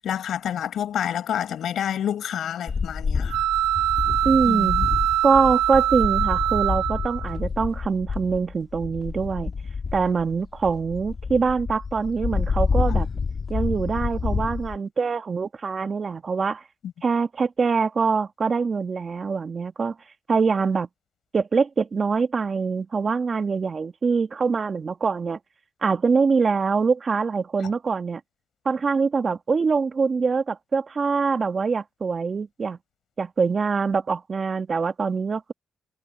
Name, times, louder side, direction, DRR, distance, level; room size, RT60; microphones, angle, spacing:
voice 1, 0.0-3.4 4.4-4.9, left 9 dB, 65° left, 4.8 m, -28 dB
sound 1, 2.7-14.8, left 5 dB, 40° left, 1.8 m, -28 dB
sound 2, 3.3-7.4, right 13 dB, 85° right, 1.0 m, -23 dB
voice 2, 4.2-4.8 5.2-9.5 9.9-13.1 13.5-16.6 17.0-19.9 20.3-20.9 21.3-25.4 25.8-28.2 28.6-32.8 33.2-35.5, right 5 dB, 40° right, 1.5 m, -24 dB
cardioid pair, 90°, 0 cm